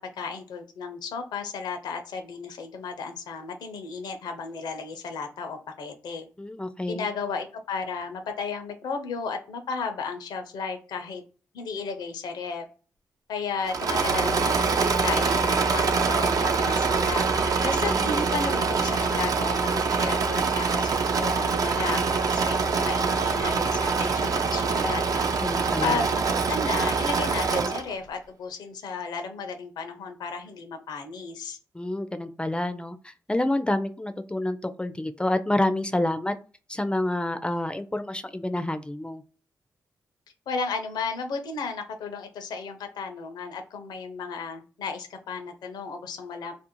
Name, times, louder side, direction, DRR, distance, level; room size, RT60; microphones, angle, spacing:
voice 1, 0.2-6.3 6.9-11.2 11.5-12.6 13.3-20.9 21.2-25.4 25.8-31.6 40.5-46.5, left 5 dB, 75° left, 6 dB, 0.5 m, -34 dB
voice 2, 6.4-7.1 17.8-18.2 25.4-26.1 31.7-36.3 36.7-39.2, left 1 dB, 15° left, 10 dB, 0.4 m, -28 dB
Engine / Mechanisms, 13.6-27.9, right 4 dB, 55° right, 0.4 m, -24 dB
2.5 x 2.0 x 2.9 m, 0.37 s
supercardioid pair, 45°, 7 cm